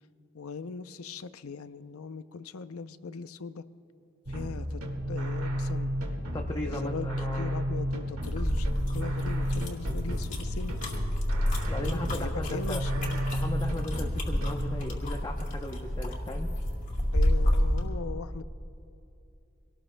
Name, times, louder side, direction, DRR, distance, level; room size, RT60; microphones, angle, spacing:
voice 1, 0.3-3.6 4.3-4.8 5.1-5.9 6.5-7.1 7.4-8.7 8.9-10.8 11.8-13.2 17.1-18.4, left 5 dB, 90° left, 12 dB, 0.6 m, -39 dB
sound 1, 4.2-14.7, equal, 90° right, 1.8 m, -33 dB
voice 2, 6.3-7.6 11.7-12.8 13.3-16.5, left 1 dB, 20° left, 1 dB, 0.7 m, -37 dB
sound 2, 8.2-17.9, equal, 40° left, 2.3 m, -30 dB
25.0 x 18.5 x 2.2 m, 2.7 s
head